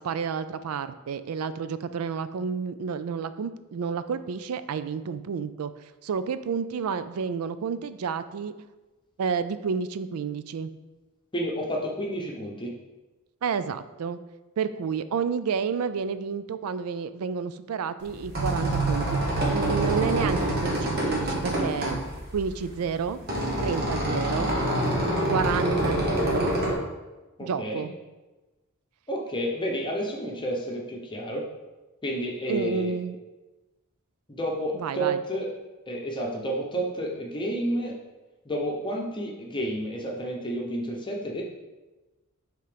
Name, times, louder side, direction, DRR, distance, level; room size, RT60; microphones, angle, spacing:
voice 1, 0.0-5.7 6.0-8.5 9.2-10.7 13.4-14.2 14.6-19.2 19.5-22.0 22.3-23.2 23.6-24.5 25.3-26.6 27.4-27.9 32.5-33.2 34.7-35.2, right 6 dB, 85° right, 13 dB, 0.4 m, -30 dB
voice 2, 11.3-12.7 27.4-27.8 29.1-31.4 32.0-32.9 34.3-35.5 35.9-38.0 38.4-41.4, right 1 dB, 20° left, -1 dB, 0.9 m, -30 dB
sound 1, 18.0-26.7, right 1 dB, 45° right, 1.4 m, -26 dB
5.4 x 3.8 x 5.1 m, 1.1 s
head